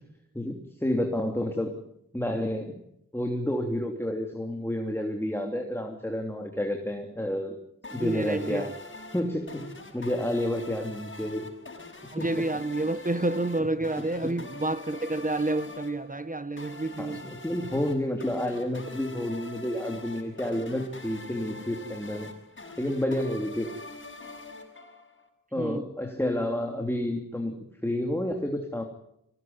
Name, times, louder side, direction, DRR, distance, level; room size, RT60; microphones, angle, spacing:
voice 1, 0.3-1.8 2.1-2.8 3.1-7.6 7.9-8.7 9.1-9.6 9.9-11.5 12.2-12.4 14.2-14.3 17.0-22.3 22.8-23.8 25.5-27.6 27.8-28.8, left 1 dB, 5° left, 3.2 m, -30 dB
sound 1, 7.8-25.3, left 3 dB, 35° left, 6.8 m, -44 dB
voice 2, 8.0-8.7 12.1-17.3 25.6-25.9, right 2 dB, 25° right, 1.2 m, -29 dB
25.0 x 18.5 x 9.7 m
wide cardioid pair, 70°, 32 cm